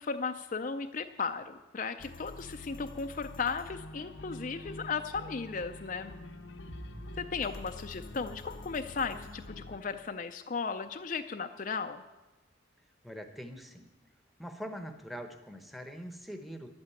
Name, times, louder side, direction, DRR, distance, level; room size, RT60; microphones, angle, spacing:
voice 1, 0.0-6.1 7.2-12.0, left 5 dB, 40° left, 7 dB, 0.5 m, -36 dB
sound 1, 2.0-9.8, left 1 dB, 75° left, 0.9 m, -47 dB
sound 2, 6.7-9.8, equal, 70° right, 1.2 m, -49 dB
voice 2, 13.0-13.9 14.4-16.7, equal, ahead, 5 dB, 0.9 m, -43 dB
11.5 x 8.8 x 8.4 m, 1.2 s
head